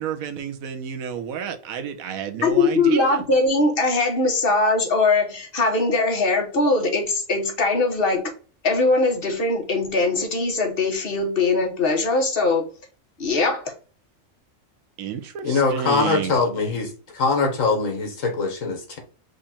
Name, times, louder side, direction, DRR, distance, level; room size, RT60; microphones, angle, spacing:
voice 1, 0.0-3.2 15.0-16.3, right 8 dB, 80° right, 1.2 m, -30 dB
voice 2, 2.4-8.3 8.6-12.6 13.2-13.7, left 3 dB, 45° left, 1.3 m, -21 dB
voice 3, 15.4-19.0, left 4 dB, 70° left, 1.7 m, -23 dB
5.0 x 2.5 x 4.2 m
omnidirectional pair, 1.4 m